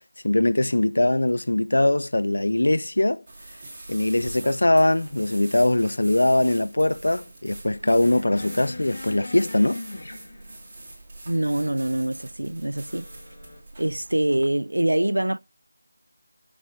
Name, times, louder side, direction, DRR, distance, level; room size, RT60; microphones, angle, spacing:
voice 1, 0.2-3.2 3.9-9.8, left 1 dB, 65° left, 0.6 m, -21 dB
sound 1, 3.3-14.5, right 2 dB, 25° right, 2.6 m, -43 dB
sound 2, 7.8-10.8 12.9-13.6, left 2 dB, 45° left, 2.1 m, -39 dB
voice 2, 11.3-13.1 13.8-15.4, right 1 dB, 75° right, 0.4 m, -24 dB
11.5 x 6.0 x 3.9 m
figure-of-eight pair, 165°, 0 cm